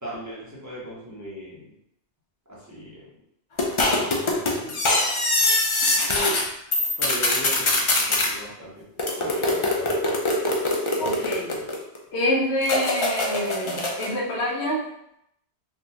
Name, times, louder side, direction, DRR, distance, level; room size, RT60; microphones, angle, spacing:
voice 1, 0.0-1.7 2.5-3.1 3.9-4.8 7.0-8.9 9.1-10.4 11.4-11.7, equal, 15° right, -7 dB, 0.8 m, -38 dB
sound 1, 3.6-6.4 6.7-8.3 9.0-12.0 12.6-14.1, left 2 dB, 45° left, 0.4 m, -23 dB
voice 2, 6.1-6.4 11.0-11.5 12.1-14.9, left 1 dB, 75° left, -3 dB, 1.0 m, -26 dB
3.6 x 2.3 x 2.8 m, 0.77 s
omnidirectional pair, 1.1 m